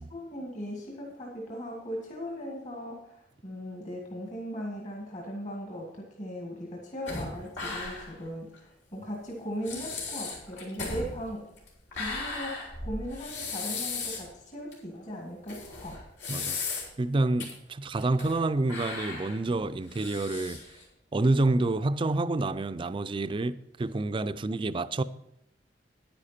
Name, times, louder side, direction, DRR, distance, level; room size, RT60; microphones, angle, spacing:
voice 1, 0.0-11.5 11.9-16.0, equal, 45° left, 1.9 m, -38 dB
sound 1, 7.1-8.2 8.5-8.6 9.3-9.4 9.6-14.3 14.7-14.8 15.5-17.0 17.4-17.5 18.0-18.4 18.7-20.8, left 4 dB, 75° left, 3.4 m, -36 dB
voice 2, 17.0-20.6 21.1-25.0, right 2 dB, 30° right, 0.4 m, -28 dB
9.9 x 9.9 x 4.3 m
head